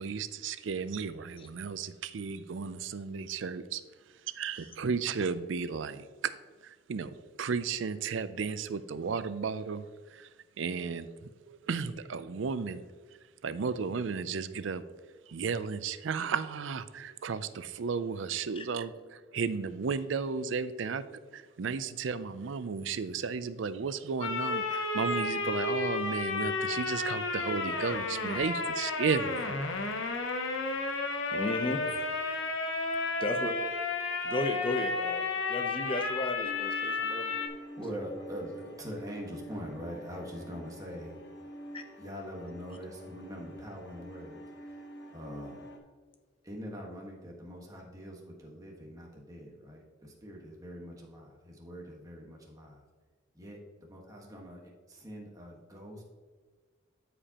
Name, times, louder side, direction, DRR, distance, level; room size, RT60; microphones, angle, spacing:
voice 1, 0.0-3.8 4.3-6.3 6.6-9.9 10.1-10.3 10.6-11.1 11.5-12.8 13.4-14.8 15.3-21.0 21.3-29.5, right 5 dB, 65° right, 13 dB, 0.4 m, -34 dB
sound 1, 24.2-37.5, left 3 dB, 75° left, 0.9 m, -32 dB
voice 2, 31.3-31.8 33.2-33.5 34.2-37.3 41.7-41.8, left 2 dB, 25° left, 7 dB, 0.7 m, -34 dB
voice 3, 32.0-32.6 36.8-37.0 37.7-41.3 42.0-44.8 45.1-45.6 46.4-52.8 53.3-56.0, equal, 20° right, -2 dB, 1.5 m, -43 dB
sound 2, 36.4-45.8, right 1 dB, 60° left, 1.2 m, -48 dB
13.0 x 5.1 x 2.9 m, 1.5 s
head